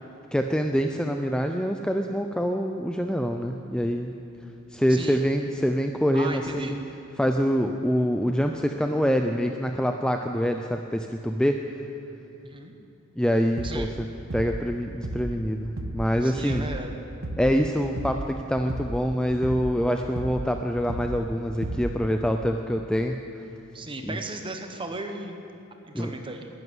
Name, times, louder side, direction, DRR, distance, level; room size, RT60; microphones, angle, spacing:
voice 1, 0.3-4.1 4.7-6.8 7.2-11.6 13.2-13.9 14.3-16.7 17.4-23.2 24.0-24.2 25.9-26.1, equal, 5° left, 4 dB, 0.4 m, -25 dB
voice 2, 4.9-5.2 6.1-6.8 12.4-12.7 13.6-13.9 16.2-17.0 23.7-25.4 25.9-26.5, right 2 dB, 25° right, 5 dB, 1.1 m, -35 dB
sound 1, 13.6-13.9 14.3-14.7 15.0-15.4 15.8-16.1 16.5-16.9 17.2-17.6 18.0-18.3 18.7-19.1 19.4-19.8 20.2-20.5 20.9-21.3 21.6-22.0, right 1 dB, 65° right, 0.9 m, -34 dB
12.0 x 11.0 x 9.5 m, 2.8 s
head